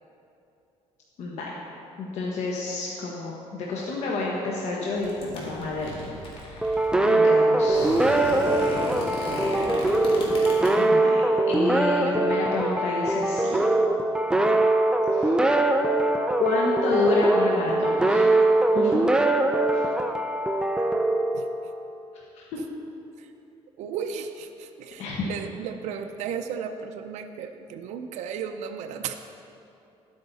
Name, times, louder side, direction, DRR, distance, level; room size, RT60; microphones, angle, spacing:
voice 1, 1.2-1.6 2.0-5.9 6.3-6.7 7.0-7.9 9.8-10.1 10.8-13.6 15.1-15.6 16.4-18.3 18.7-19.0 19.7-19.8 22.3-22.4 25.0-25.3, left 3 dB, 70° left, -3 dB, 1.3 m, -29 dB
sound 1, 4.9-6.9 7.6-10.7, left 1 dB, 55° left, 2.6 m, -34 dB
sound 2, 6.6-22.0, right 2 dB, 5° right, 0.5 m, -22 dB
voice 2, 23.8-29.1, right 7 dB, 85° right, 7 dB, 0.6 m, -35 dB
12.0 x 8.6 x 4.1 m, 2.8 s
cardioid pair, 115°, 12 cm